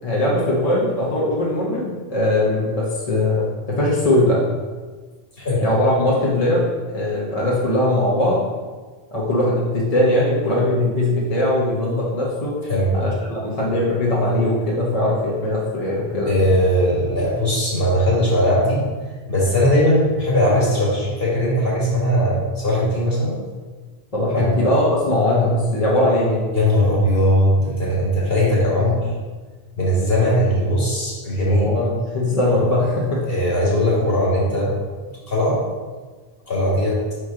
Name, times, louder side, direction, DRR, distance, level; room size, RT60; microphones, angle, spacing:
voice 1, 0.0-4.4 5.6-6.7 6.9-8.4 9.1-12.5 12.9-16.3 24.1-26.4 31.5-33.2, left 1 dB, 35° left, -5 dB, 1.1 m, -20 dB
voice 2, 16.3-18.8 19.3-23.4 24.3-24.5 26.5-29.0 29.8-31.7 33.3-34.7 35.3-35.6 36.5-37.0, equal, 60° left, -5 dB, 2.1 m, -19 dB
6.0 x 4.7 x 3.7 m, 1.4 s
omnidirectional pair, 1.1 m